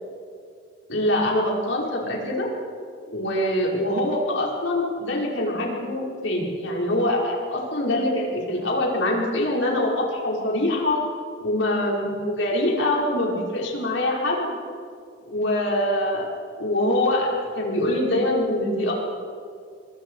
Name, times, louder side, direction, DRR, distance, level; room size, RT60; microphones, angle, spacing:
voice 1, 0.9-2.5 3.1-11.0 11.4-14.6 15.3-16.2 16.6-17.3 17.6-18.9, left 1 dB, 85° left, -2 dB, 5.3 m, -24 dB
26.0 x 21.5 x 4.9 m, 2.2 s
head